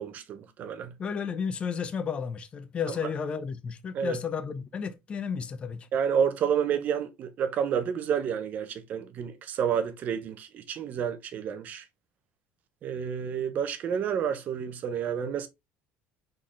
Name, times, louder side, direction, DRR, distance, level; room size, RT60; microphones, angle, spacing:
voice 1, 0.0-0.9 3.9-4.2 5.9-11.8 12.8-15.5, right 8 dB, 40° right, 0.7 m, -29 dB
voice 2, 1.0-5.9, left 6 dB, 25° left, 0.6 m, -32 dB
4.3 x 3.8 x 3.1 m
cardioid pair, 155°, 4 cm